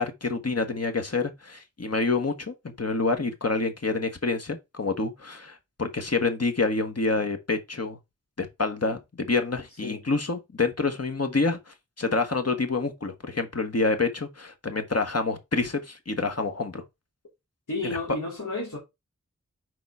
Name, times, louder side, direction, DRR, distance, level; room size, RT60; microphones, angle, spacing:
voice 1, 0.0-8.0 8.4-16.8 17.8-18.0, left 3 dB, 55° left, 1.4 m, -27 dB
voice 2, 17.7-18.8, left 3 dB, 80° left, 2.8 m, -32 dB
4.7 x 4.1 x 5.4 m
wide cardioid pair, 45°, 30 cm